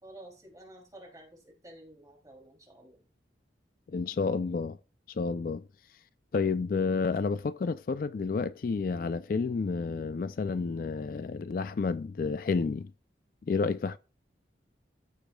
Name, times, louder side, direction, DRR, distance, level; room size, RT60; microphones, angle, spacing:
voice 1, 0.0-3.0, right 1 dB, 20° right, 2.8 m, -51 dB
voice 2, 3.9-4.8 5.1-5.6 6.3-12.9 13.5-14.0, left 4 dB, 50° left, 0.3 m, -30 dB
15.0 x 5.1 x 2.3 m
head